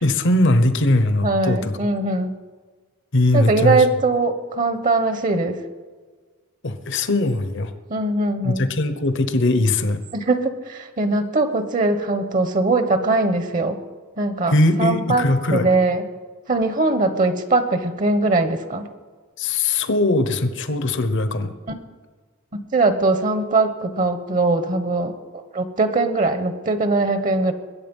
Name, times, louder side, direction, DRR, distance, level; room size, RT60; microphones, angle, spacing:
voice 1, 0.0-1.7 3.1-3.8 6.6-7.7 8.4-10.0 14.5-15.7 19.4-21.5, left 2 dB, 60° left, 10 dB, 1.0 m, -20 dB
voice 2, 1.2-2.3 3.3-5.6 7.9-8.7 10.1-13.8 14.2-14.5 14.8-16.0 16.5-18.9 22.5-25.1 25.5-27.5, right 3 dB, 40° right, 10 dB, 1.0 m, -21 dB
21.5 x 8.6 x 5.5 m, 1.5 s
head